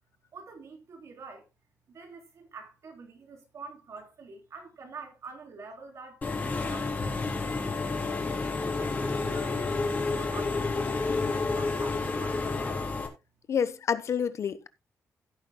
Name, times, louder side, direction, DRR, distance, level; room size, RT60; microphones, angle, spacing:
voice 1, 0.3-1.4 1.9-8.2 8.8-12.4, right 4 dB, 60° right, 3.5 m, -47 dB
Engine / Mechanisms, 6.2-13.1, left 3 dB, 30° left, 3.4 m, -30 dB
voice 2, 13.5-14.7, left 7 dB, 55° left, 0.9 m, -28 dB
16.0 x 9.6 x 2.2 m
wide cardioid pair, 150°, 6 cm